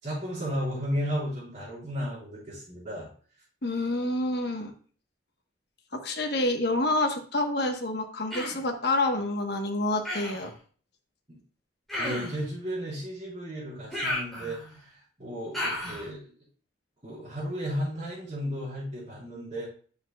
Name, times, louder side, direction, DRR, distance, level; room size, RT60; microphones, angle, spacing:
voice 1, 0.0-3.1 11.3-11.4 12.0-14.9 15.2-16.3 17.0-19.7, equal, 30° right, -14 dB, 3.8 m, -34 dB
voice 2, 3.6-4.7 5.9-10.5, left 2 dB, 60° left, 4 dB, 1.1 m, -28 dB
Human voice, 8.3-8.7 10.0-10.5 11.9-12.5 13.9-14.8 15.5-16.1, left 1 dB, ahead, 3.2 m, -33 dB
8.6 x 6.6 x 2.3 m, 0.43 s
head